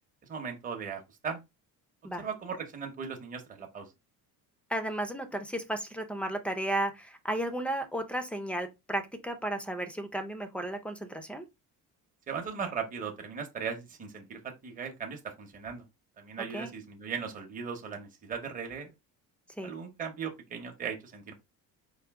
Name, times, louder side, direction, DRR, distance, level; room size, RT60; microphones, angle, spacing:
voice 1, 0.3-1.4 2.2-3.9 12.3-15.8 16.2-18.9 19.6-21.3, right 6 dB, 20° right, 0.8 m, -38 dB
voice 2, 4.7-11.5 16.5-16.7 19.6-19.7, right 1 dB, 5° left, 0.5 m, -34 dB
5.0 x 2.6 x 3.5 m
cardioid pair, 160°, 37 cm